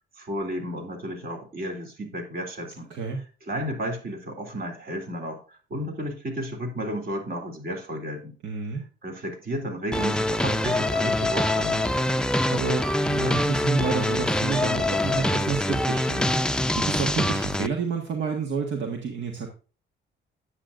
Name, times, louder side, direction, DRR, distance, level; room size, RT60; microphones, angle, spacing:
voice 1, 0.2-2.9 3.5-5.4 5.7-8.3 9.0-11.9, equal, 50° right, 3 dB, 3.2 m, -32 dB
voice 2, 8.4-8.8 12.5-16.3 16.7-19.5, right 4 dB, 70° right, 2 dB, 1.6 m, -29 dB
sound 1, 9.9-17.7, left 1 dB, 5° left, 0.5 m, -24 dB
10.0 x 8.1 x 2.6 m, 0.36 s
cardioid pair, 90°, 20 cm